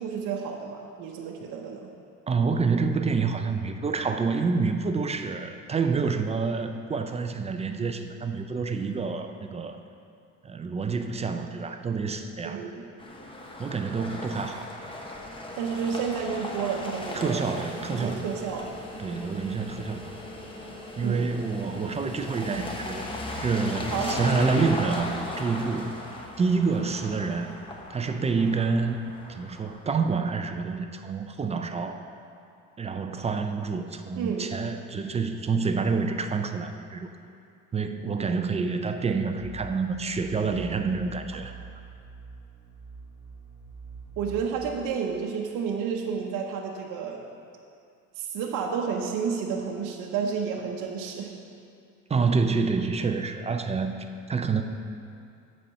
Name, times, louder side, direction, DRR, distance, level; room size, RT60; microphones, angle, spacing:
voice 1, 0.0-1.9 12.4-12.9 15.6-17.5 17.9-18.8 21.0-21.4 23.9-24.2 34.2-34.5 44.2-47.2 48.2-51.3, right 6 dB, 65° right, 0 dB, 0.8 m, -31 dB
voice 2, 2.3-9.8 10.4-12.6 13.6-14.7 17.1-18.3 19.0-20.1 21.0-23.0 23.4-26.1 26.4-27.5 27.9-29.0 29.3-32.0 32.8-37.1 37.7-41.5 52.1-54.6, right 4 dB, 20° right, 7 dB, 0.4 m, -28 dB
sound 1, 13.0-30.0, left 1 dB, 15° left, 0.9 m, -37 dB
sound 2, 39.3-44.8, right 4 dB, 85° left, 2.1 m, -45 dB
8.1 x 4.3 x 6.8 m, 2.4 s
cardioid pair, 110°, 34 cm